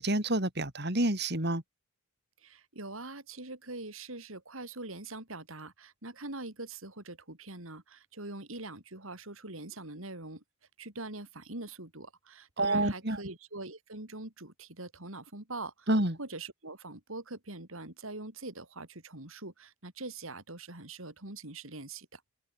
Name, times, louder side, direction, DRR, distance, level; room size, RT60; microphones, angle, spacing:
voice 1, 0.0-1.6 12.6-13.2 15.9-16.2, right 1 dB, 50° right, 4.4 m, -28 dB
voice 2, 2.4-10.4 10.8-15.9 16.2-22.2, right 2 dB, 70° right, 4.5 m, -43 dB
open air
head